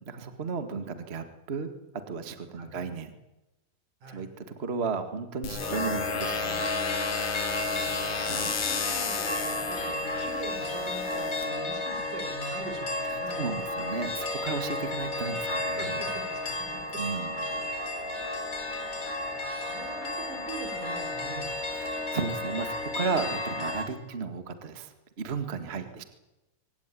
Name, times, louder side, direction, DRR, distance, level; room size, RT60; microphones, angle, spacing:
voice 1, 0.0-1.7 2.1-3.1 4.1-6.7 8.3-8.6 13.1-16.0 17.0-17.3 17.6-17.7 21.7-26.0, right 5 dB, 25° right, 8 dB, 1.6 m, -34 dB
voice 2, 2.5-2.9 4.0-4.3 7.5-13.4 15.7-17.0 18.7-21.5 25.7-25.9, right 4 dB, 75° right, 6 dB, 5.5 m, -43 dB
sound 1, 5.4-11.4, left 6 dB, 75° left, 4.3 m, -34 dB
sound 2, 5.6-23.9, left 2 dB, 25° left, 4.3 m, -33 dB
24.0 x 17.5 x 9.9 m, 1.0 s
omnidirectional pair, 3.6 m